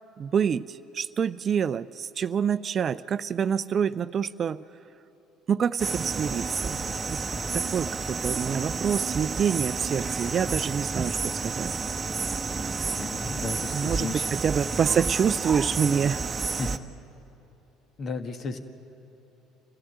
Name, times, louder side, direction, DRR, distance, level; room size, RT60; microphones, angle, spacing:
voice 1, 0.2-4.6 5.5-6.8 7.1-7.2 7.5-11.7 13.7-16.2, right 7 dB, 45° right, 15 dB, 0.4 m, -27 dB
sound 1, 5.8-16.8, right 4 dB, 30° right, 0.9 m, -30 dB
voice 2, 13.0-14.3 16.6-16.7 18.0-18.6, left 4 dB, 45° left, 8 dB, 1.6 m, -34 dB
25.5 x 15.5 x 8.0 m, 3.0 s
hypercardioid pair, 60°, 0 cm